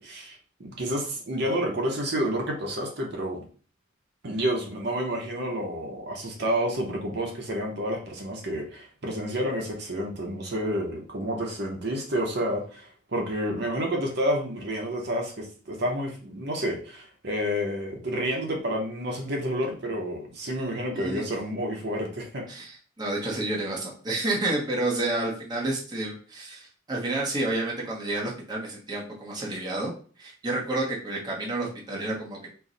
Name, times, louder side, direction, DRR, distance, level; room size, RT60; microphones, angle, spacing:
voice 1, 0.0-3.4 4.2-22.5, equal, 60° right, 0 dB, 0.9 m, -29 dB
voice 2, 22.5-29.9 30.2-32.5, right 2 dB, 20° right, -3 dB, 0.9 m, -30 dB
4.5 x 2.2 x 3.9 m, 0.41 s
head